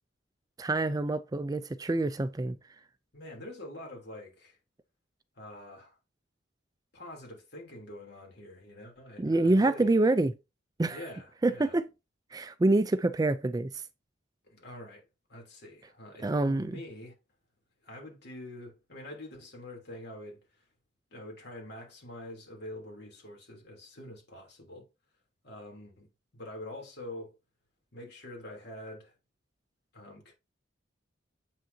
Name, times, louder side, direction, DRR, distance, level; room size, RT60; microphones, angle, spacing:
voice 1, 0.6-2.6 9.2-10.3 10.8-11.0 11.4-11.9 12.3-13.7 16.2-16.8, right 2 dB, 20° right, 0.4 m, -26 dB
voice 2, 3.1-4.6 5.4-6.0 6.9-9.9 10.9-11.7 14.4-17.1 17.8-20.4 21.1-24.9 25.4-26.1 26.3-27.3 27.9-29.1 29.9-30.3, left 1 dB, 60° left, 3.1 m, -45 dB
8.0 x 6.4 x 2.7 m
head